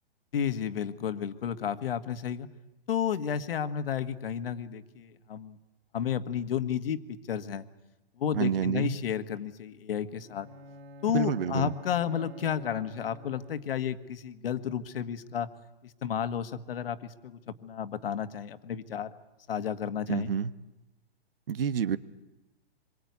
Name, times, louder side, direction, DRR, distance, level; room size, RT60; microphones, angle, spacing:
voice 1, 0.3-2.5 2.9-5.6 5.9-7.7 8.2-10.5 11.0-15.5 15.8-19.1 19.5-20.3, left 8 dB, 65° left, 10 dB, 1.7 m, -32 dB
voice 2, 8.3-9.0 11.1-11.7 20.1-20.5 21.5-22.0, right 8 dB, 65° right, 15 dB, 1.3 m, -28 dB
Bowed string instrument, 10.2-13.9, left 1 dB, 85° right, 3.4 m, -48 dB
26.0 x 23.0 x 9.5 m, 0.98 s
hypercardioid pair, 160°, 30 cm